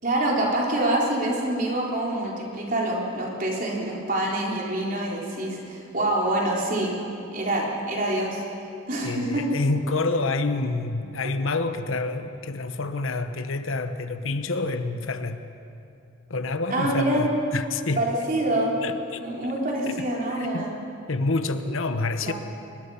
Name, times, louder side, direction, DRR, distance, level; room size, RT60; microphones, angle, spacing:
voice 1, 0.0-6.9 7.3-8.4 8.9-9.5 16.7-17.3 18.0-18.7 19.2-20.8 22.2-22.3, right 1 dB, 40° right, -3 dB, 3.8 m, -26 dB
voice 2, 9.0-15.4 16.3-18.0 18.8-19.5 19.9-20.1 20.4-20.7 21.1-22.3, left 3 dB, 65° left, 9 dB, 0.9 m, -28 dB
23.5 x 20.5 x 5.7 m, 2.7 s
head